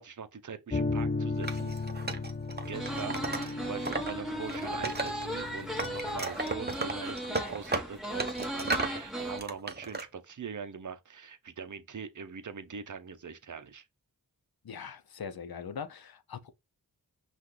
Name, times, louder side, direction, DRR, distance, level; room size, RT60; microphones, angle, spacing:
voice 1, 0.0-1.7 2.7-13.8, right 6 dB, 50° right, 0.7 m, -42 dB
sound 1, 0.7-6.3, left 3 dB, 25° left, 0.6 m, -35 dB
Wood, 1.4-4.1 4.4-5.5 5.8-9.0 9.4-10.0, right 3 dB, 25° right, 0.8 m, -35 dB
sound 2, 2.7-9.4, equal, ahead, 1.5 m, -37 dB
voice 2, 14.6-16.5, left 6 dB, 70° left, 0.7 m, -41 dB
5.6 x 2.5 x 3.3 m
wide cardioid pair, 55°, 38 cm